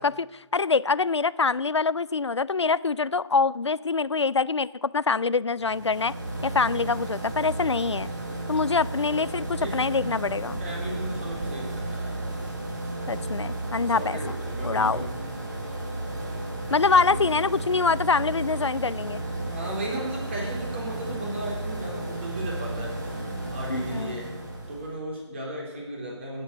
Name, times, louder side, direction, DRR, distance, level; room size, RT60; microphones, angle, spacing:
voice 1, 0.0-6.1 6.4-8.1 8.5-10.6 13.1-14.2 14.6-15.1 16.7-19.2 23.7-24.2, left 4 dB, 70° left, 20 dB, 0.5 m, -25 dB
sound 1, 5.6-25.0, right 2 dB, 40° right, 3.3 m, -33 dB
voice 2, 8.9-10.2 10.6-12.2 13.9-15.2 17.1-17.2 19.4-23.2 23.5-24.4 24.7-26.4, right 1 dB, 25° right, -2 dB, 3.6 m, -36 dB
13.5 x 8.9 x 8.0 m, 1.1 s
figure-of-eight pair, 155°, 15 cm